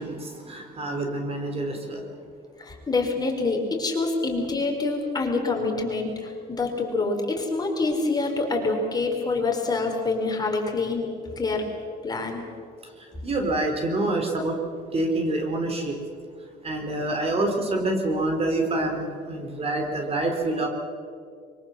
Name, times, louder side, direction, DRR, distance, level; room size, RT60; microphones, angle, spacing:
voice 1, 0.0-2.0 13.2-14.6 14.9-16.0 16.6-20.7, right 2 dB, 35° right, 3 dB, 3.9 m, -26 dB
voice 2, 2.6-11.1 11.4-11.6 12.0-12.4, left 3 dB, 25° left, 1 dB, 4.6 m, -26 dB
24.0 x 23.0 x 7.1 m, 2.3 s
cardioid pair, 110°, 17 cm